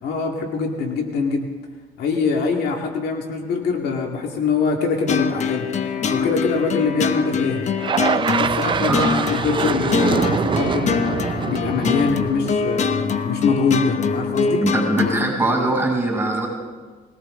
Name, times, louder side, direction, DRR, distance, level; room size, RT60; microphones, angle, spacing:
voice 1, 0.0-1.5 2.0-5.7 6.1-7.7 8.3-9.0 9.3-11.1 11.4-14.7, left 4 dB, 70° left, 2 dB, 2.2 m, -23 dB
sound 1, 5.1-15.3, left 6 dB, 45° left, 0.9 m, -24 dB
sound 2, 7.8-13.1, right 7 dB, 30° right, 0.4 m, -24 dB
voice 2, 14.6-16.5, right 2 dB, 10° right, -2 dB, 7.0 m, -21 dB
21.0 x 18.0 x 3.8 m, 1.4 s
cardioid pair, 110°, 17 cm